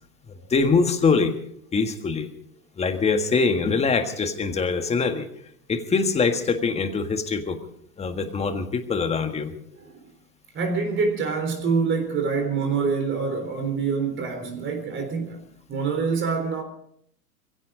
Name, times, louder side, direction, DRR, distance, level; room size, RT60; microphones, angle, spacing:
voice 1, 0.5-1.3 1.7-2.3 2.8-5.3 5.7-7.6 8.0-9.5, left 4 dB, 15° left, 1.6 m, -23 dB
voice 2, 10.5-15.4 15.7-16.6, right 5 dB, 25° right, 3.7 m, -25 dB
22.0 x 16.5 x 3.8 m
hypercardioid pair, 120°, 46 cm